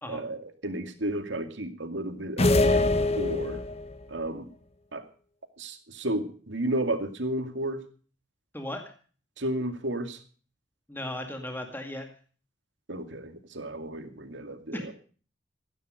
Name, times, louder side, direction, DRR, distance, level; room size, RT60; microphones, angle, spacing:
voice 1, 0.1-3.6 4.1-4.5 4.9-5.0 5.6-7.8 9.4-10.2 12.9-14.9, right 1 dB, 75° right, 7 dB, 2.3 m, -33 dB
sound 1, 2.4-3.9, left 2 dB, 35° left, 1.1 m, -23 dB
voice 2, 10.9-12.1 14.7-14.9, left 1 dB, 10° left, 4 dB, 2.2 m, -36 dB
15.0 x 13.0 x 5.1 m, 0.41 s
head